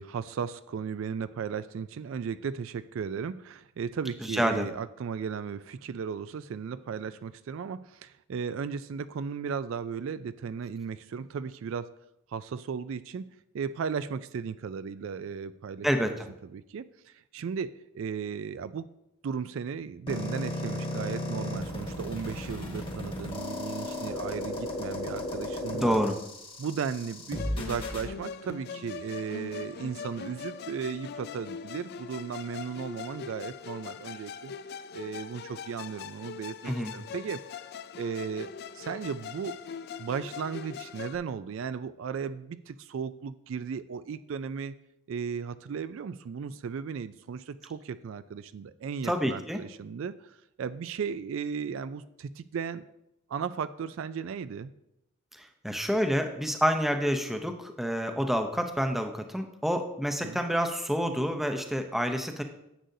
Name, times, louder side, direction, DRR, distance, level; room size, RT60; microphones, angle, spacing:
voice 1, 0.0-11.9 12.3-13.3 13.5-16.2 16.4-18.9 19.2-26.0 26.6-34.5 34.9-37.4 38.0-39.6 40.0-44.7 45.1-52.8 53.3-54.7 60.2-60.4, right 6 dB, 65° right, 14 dB, 0.3 m, -36 dB
voice 2, 4.3-4.7 15.8-16.1 25.7-26.1 36.6-36.9 49.0-49.6 55.4-62.4, equal, ahead, 5 dB, 0.6 m, -28 dB
sound 1, 20.1-28.1, left 1 dB, 25° left, 1.2 m, -35 dB
Musical instrument, 27.3-41.2, left 6 dB, 50° left, 0.4 m, -41 dB
10.0 x 7.8 x 2.7 m, 0.82 s
head